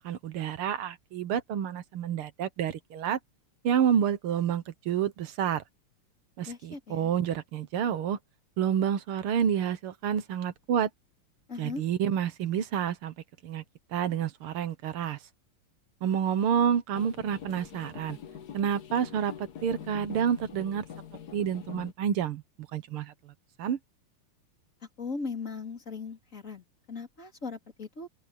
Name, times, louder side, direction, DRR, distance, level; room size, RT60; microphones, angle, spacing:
voice 1, 0.0-3.2 3.6-5.6 6.4-8.2 8.6-10.9 11.6-13.1 13.4-13.6 13.9-15.2 16.0-18.2 18.5-20.8 21.3-22.4 22.7-23.3 23.6-23.8, right 8 dB, 75° right, 2.0 m, -29 dB
voice 2, 6.5-7.1 11.5-11.8 25.0-28.1, left 4 dB, 35° left, 3.8 m, -38 dB
sound 1, 16.9-21.9, left 8 dB, 50° left, 1.6 m, -44 dB
open air
omnidirectional pair, 2.4 m